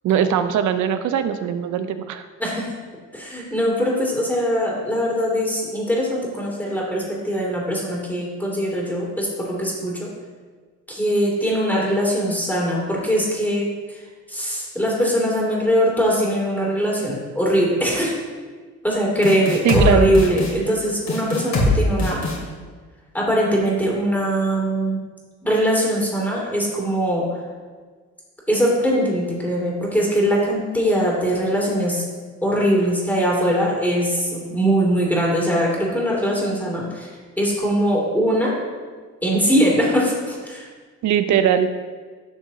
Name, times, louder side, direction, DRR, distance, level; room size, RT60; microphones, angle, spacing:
voice 1, 0.0-2.3 19.6-20.1 41.0-41.7, right 9 dB, 75° right, 10 dB, 0.7 m, -20 dB
voice 2, 3.1-10.1 10.9-13.7 14.3-18.1 18.8-22.2 23.1-25.0 25.4-27.2 28.5-32.0 32.4-37.1 37.4-38.5 39.2-40.7, equal, 5° left, -4 dB, 2.5 m, -21 dB
sound 1, 19.2-19.9 20.1-20.5 21.1-21.7 22.0-22.4, left 2 dB, 65° left, 2.5 m, -21 dB
11.0 x 6.2 x 2.8 m, 1.5 s
cardioid pair, 90°, 30 cm